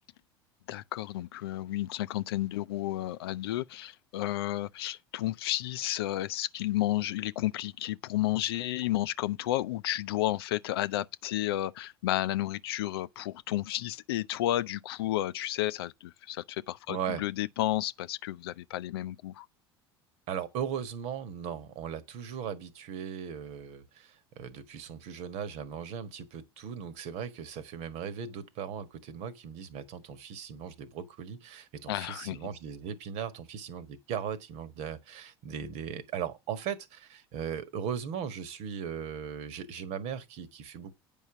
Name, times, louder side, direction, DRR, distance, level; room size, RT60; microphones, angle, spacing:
voice 1, 0.7-19.5 31.9-32.4, left 14 dB, 70° left, 0.5 m, -32 dB
voice 2, 16.9-17.2 20.3-40.9, right 8 dB, 55° right, 1.5 m, -38 dB
9.2 x 5.4 x 6.0 m
hypercardioid pair, 70°, 13 cm